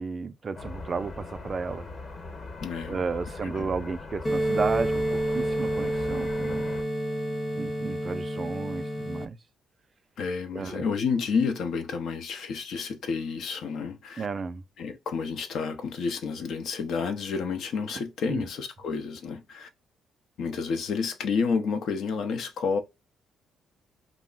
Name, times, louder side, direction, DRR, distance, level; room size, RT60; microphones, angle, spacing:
voice 1, 0.0-1.9 2.9-5.0 5.3-6.7 7.6-9.4 10.5-10.9 14.2-14.6 17.9-18.0 18.3-18.5, right 4 dB, 40° right, 0.3 m, -32 dB
sound 1, 0.5-6.8, left 3 dB, 45° left, 1.0 m, -40 dB
voice 2, 2.6-3.0 3.4-3.7 10.2-14.3 14.8-19.7 20.4-22.8, left 5 dB, 70° left, 0.6 m, -30 dB
sound 2, 4.2-9.2, right 1 dB, 25° left, 0.8 m, -29 dB
2.4 x 2.0 x 3.6 m
cardioid pair, 90°, 0 cm